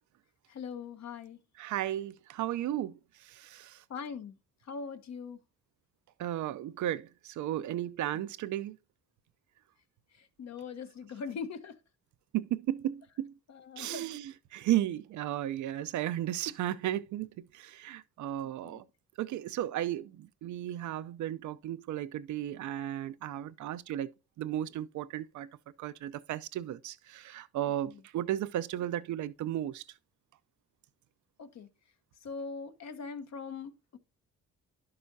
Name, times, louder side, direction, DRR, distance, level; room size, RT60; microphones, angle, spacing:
voice 1, 0.5-1.4 3.9-4.4 4.6-5.4 10.1-11.8 13.5-14.2 18.4-18.8 27.8-28.0 31.4-31.7 32.2-34.0, left 5 dB, 60° left, 1.2 m, -41 dB
voice 2, 1.6-3.8 6.2-8.8 12.3-13.3 13.8-18.9 19.2-24.1 24.4-25.5 25.8-29.8, right 12 dB, 70° right, 0.6 m, -34 dB
11.0 x 6.7 x 2.7 m
cardioid pair, 90°, 30 cm